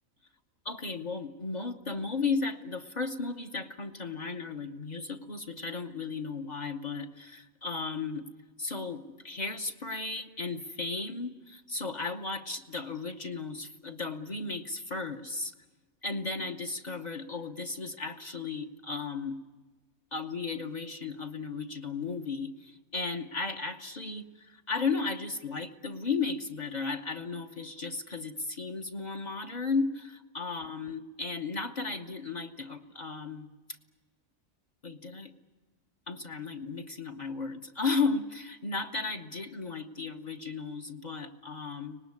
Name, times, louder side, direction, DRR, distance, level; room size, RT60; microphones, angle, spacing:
voice 1, 0.6-8.3 8.6-15.5 16.0-19.4 20.1-33.5 34.8-35.3 36.1-42.0, left 4 dB, 35° left, 5 dB, 0.9 m, -35 dB
24.5 x 19.5 x 9.6 m, 1.3 s
omnidirectional pair, 1.4 m